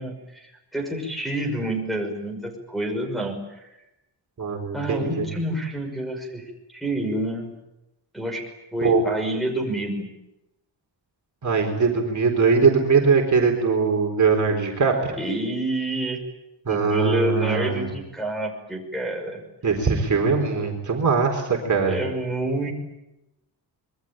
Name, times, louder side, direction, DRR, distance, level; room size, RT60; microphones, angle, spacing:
voice 1, 0.0-3.7 4.7-7.5 8.1-10.1 15.2-16.2 16.7-19.4 21.8-22.7, right 1 dB, ahead, -1 dB, 5.9 m, -28 dB
voice 2, 4.4-5.3 8.8-9.0 11.4-15.2 16.7-17.9 19.6-22.0, right 5 dB, 40° right, 2 dB, 4.1 m, -21 dB
26.0 x 22.5 x 9.0 m, 0.92 s
wide cardioid pair, 160°, 44 cm